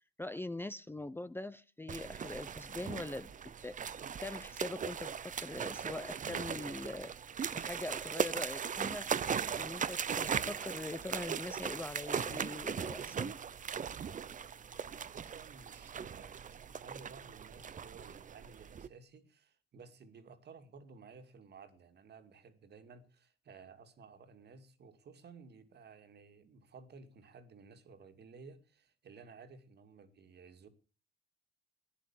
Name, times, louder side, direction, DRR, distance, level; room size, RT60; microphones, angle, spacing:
voice 1, 0.2-3.3 3.6-3.8 4.2-7.1 7.5-9.1 9.6-13.4, left 2 dB, 10° left, 0.7 m, -42 dB
sound 1, 1.9-18.9, right 7 dB, 40° right, 0.8 m, -39 dB
voice 2, 15.1-30.7, right 5 dB, 55° right, 2.5 m, -55 dB
15.5 x 10.0 x 7.3 m
cardioid pair, 90°, 20 cm